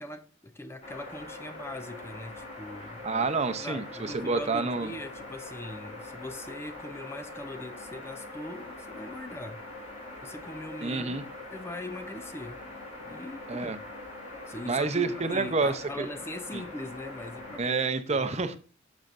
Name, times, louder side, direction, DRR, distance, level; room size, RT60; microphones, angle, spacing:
voice 1, 0.0-3.1 3.6-9.7 10.2-11.2 11.5-12.6 13.0-13.7 14.2-17.8 18.1-18.3, left 1 dB, 15° left, 0.5 m, -41 dB
sound 1, 0.8-17.6, left 2 dB, 40° left, 5.2 m, -43 dB
voice 2, 3.0-4.9 10.8-11.2 13.5-13.8 14.7-16.1 16.5-16.6 17.6-18.6, right 4 dB, 35° right, 0.7 m, -28 dB
12.0 x 7.2 x 2.6 m
head